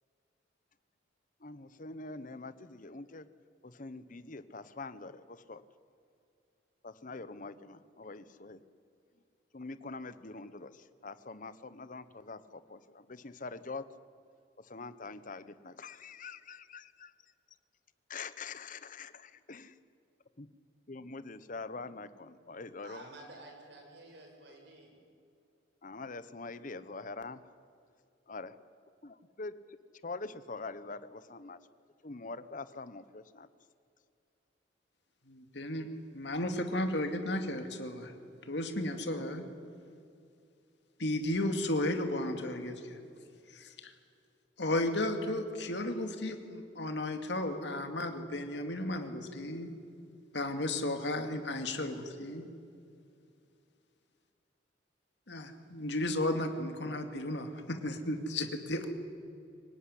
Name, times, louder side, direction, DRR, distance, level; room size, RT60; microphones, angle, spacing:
voice 1, 1.4-3.3 3.6-5.6 6.8-8.6 9.5-13.8 14.6-17.1 18.1-19.1 19.5-19.7 20.4-20.5 20.9-23.0 25.8-27.4 28.3-28.6 29.0-29.8 30.0-31.6 32.0-33.5, left 3 dB, 45° left, 14 dB, 1.0 m, -44 dB
voice 2, 22.8-25.0, right 2 dB, 65° right, 1 dB, 6.5 m, -51 dB
voice 3, 35.3-38.1 38.4-39.5 41.0-43.0 43.5-43.9 44.6-49.7 50.3-52.4 55.3-58.9, left 1 dB, 65° left, 6 dB, 2.4 m, -34 dB
25.0 x 18.0 x 10.0 m, 2.4 s
head